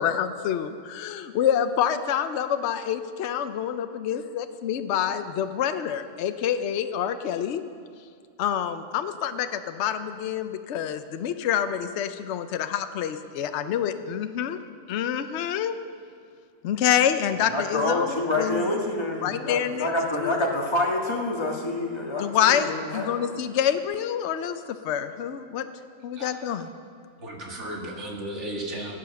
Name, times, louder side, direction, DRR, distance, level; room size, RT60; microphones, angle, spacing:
voice 1, 0.0-7.6 8.4-14.6 14.9-15.8 16.6-18.6 19.2-19.9 20.1-20.4 22.2-25.7 26.0-26.7, left 9 dB, 65° left, 9 dB, 0.9 m, -27 dB
voice 2, 17.4-23.3, left 2 dB, 20° left, 0 dB, 1.5 m, -27 dB
voice 3, 27.2-29.0, right 1 dB, 65° right, 0 dB, 2.1 m, -34 dB
16.0 x 8.7 x 6.8 m, 2.2 s
omnidirectional pair, 1.3 m